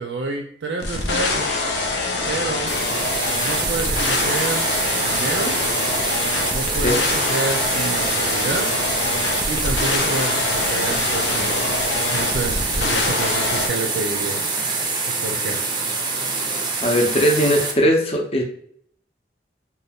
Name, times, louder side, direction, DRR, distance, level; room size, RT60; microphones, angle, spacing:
voice 1, 0.0-1.6 2.3-2.7 3.4-5.6 6.5-8.7 9.5-11.6 12.1-14.7 15.2-15.6, right 3 dB, 80° right, 2 dB, 0.5 m, -29 dB
sound 1, 0.8-13.7, left 3 dB, 85° left, 0.5 m, -24 dB
sound 2, 2.7-17.7, right 4 dB, 25° right, 0.4 m, -25 dB
voice 2, 16.8-18.4, equal, 35° left, 1 dB, 0.6 m, -19 dB
2.7 x 2.2 x 3.4 m, 0.62 s
head